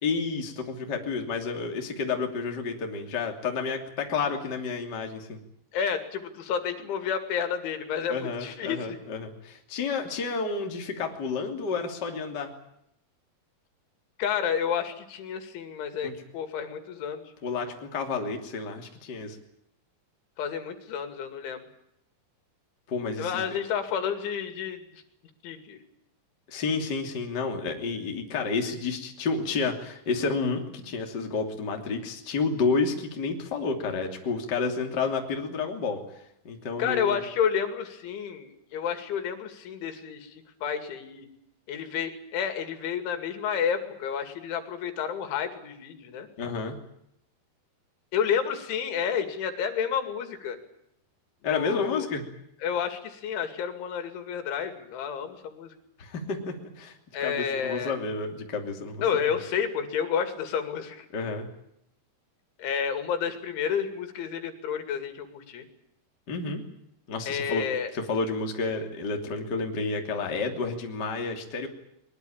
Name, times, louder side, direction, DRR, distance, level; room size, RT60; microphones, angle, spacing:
voice 1, 0.0-5.4 8.1-12.5 16.0-16.1 17.4-19.4 22.9-23.4 26.5-36.0 36.4-37.2 46.4-46.8 51.4-52.2 56.0-56.9 57.2-59.0 61.1-61.5 66.3-66.6 67.1-67.6 67.9-71.7, left 4 dB, 25° left, 3 dB, 2.8 m, -30 dB
voice 2, 5.7-9.0 14.2-17.2 20.4-21.6 23.2-25.0 25.4-25.8 36.8-41.3 41.7-46.3 48.1-50.6 51.4-52.1 52.6-55.7 57.1-57.9 59.0-61.1 62.6-65.7 67.3-67.9, left 7 dB, 80° left, 8 dB, 4.8 m, -30 dB
22.0 x 22.0 x 8.8 m, 0.78 s
omnidirectional pair, 5.4 m